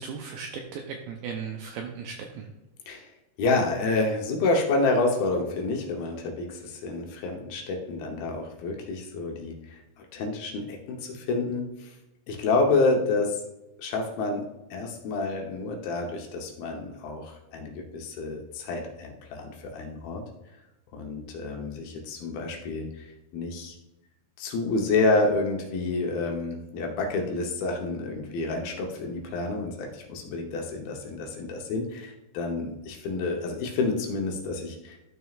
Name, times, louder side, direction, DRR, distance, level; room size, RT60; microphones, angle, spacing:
voice 1, 0.0-2.5, right 6 dB, 85° right, 2 dB, 2.1 m, -36 dB
voice 2, 3.4-11.9 12.3-13.4 13.8-14.4 14.7-20.2 20.9-23.8 24.4-35.0, left 3 dB, 75° left, 1 dB, 2.5 m, -29 dB
12.5 x 6.2 x 2.4 m, 0.98 s
omnidirectional pair, 4.8 m